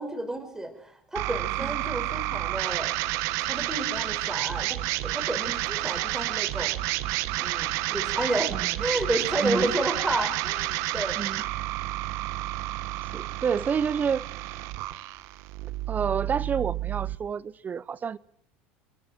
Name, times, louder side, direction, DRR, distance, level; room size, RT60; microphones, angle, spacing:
voice 1, 0.0-3.0 3.5-6.7 7.4-11.2, right 1 dB, 10° right, 5.3 m, -31 dB
sound 1, 1.1-17.2, right 17 dB, 65° right, 1.3 m, -30 dB
voice 2, 9.4-9.7 11.2-11.4 13.1-14.3 15.6-18.2, right 6 dB, 30° right, 0.8 m, -29 dB
27.5 x 21.5 x 4.4 m
hypercardioid pair, 85°, 6 cm